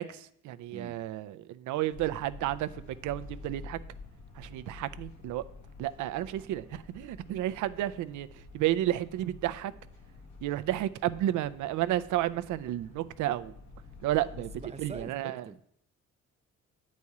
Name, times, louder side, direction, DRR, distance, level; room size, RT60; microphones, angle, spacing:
voice 1, 0.0-3.8 4.4-5.4 5.8-8.3 8.5-9.7 10.4-13.5 14.0-14.5 14.8-15.4, right 13 dB, 75° right, 0.5 m, -32 dB
sound 1, 1.9-15.0, left 3 dB, 70° left, 1.2 m, -49 dB
voice 2, 14.6-15.6, right 4 dB, 20° right, 0.5 m, -44 dB
8.4 x 4.2 x 4.7 m
cardioid pair, 90°, 30 cm